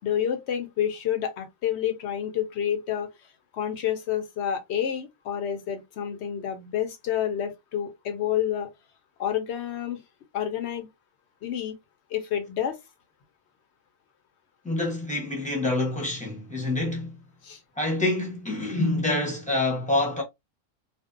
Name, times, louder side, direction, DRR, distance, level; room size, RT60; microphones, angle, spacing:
voice 1, 0.0-3.1 3.5-8.7 9.2-10.0 10.3-10.9 11.4-11.8 12.1-12.8 17.4-17.6, left 10 dB, 60° left, 0.8 m, -29 dB
voice 2, 14.6-17.2 17.8-20.2, left 2 dB, 5° left, 0.6 m, -27 dB
2.5 x 2.1 x 2.4 m
omnidirectional pair, 1.4 m